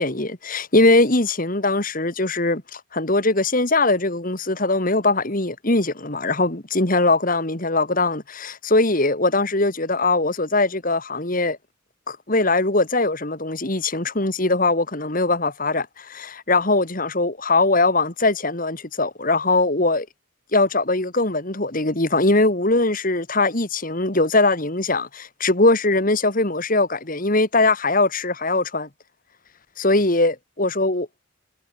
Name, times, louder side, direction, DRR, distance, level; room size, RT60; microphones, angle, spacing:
voice 1, 0.0-11.6 12.1-20.1 20.5-28.9 29.8-31.1, left 2 dB, 40° left, 2.3 m, -21 dB
head